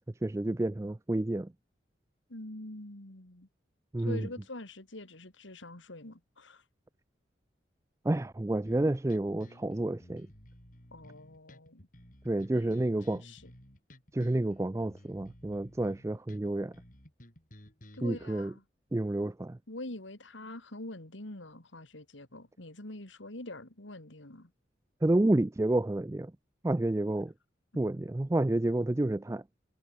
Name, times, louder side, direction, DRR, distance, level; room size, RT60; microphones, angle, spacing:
voice 1, 0.2-1.5 3.9-4.3 8.0-10.3 12.2-13.2 14.1-16.7 18.0-18.5 18.9-19.6 25.0-26.3 26.6-27.3 27.7-29.4, right 1 dB, 15° right, 0.3 m, -29 dB
voice 2, 2.3-3.5 4.0-6.6 10.9-11.9 12.5-13.4 17.9-18.6 19.7-24.5, left 1 dB, 80° left, 3.1 m, -45 dB
sound 1, 8.7-18.3, equal, 40° left, 7.1 m, -54 dB
head